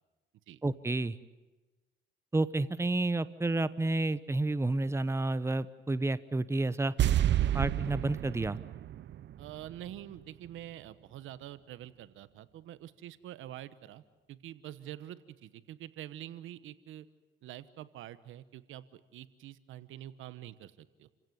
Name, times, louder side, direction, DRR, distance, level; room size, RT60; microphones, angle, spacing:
voice 1, 0.6-1.2 2.3-6.9 7.5-8.6, right 2 dB, 15° right, 15 dB, 1.0 m, -30 dB
sound 1, 7.0-10.2 10.4-10.5, right 12 dB, 65° right, 0.8 m, -30 dB
voice 2, 9.4-14.0 14.3-17.1 17.4-21.1, right 12 dB, 85° right, 15 dB, 1.2 m, -46 dB
29.5 x 16.5 x 9.5 m, 1.2 s
cardioid pair, 90°, 20 cm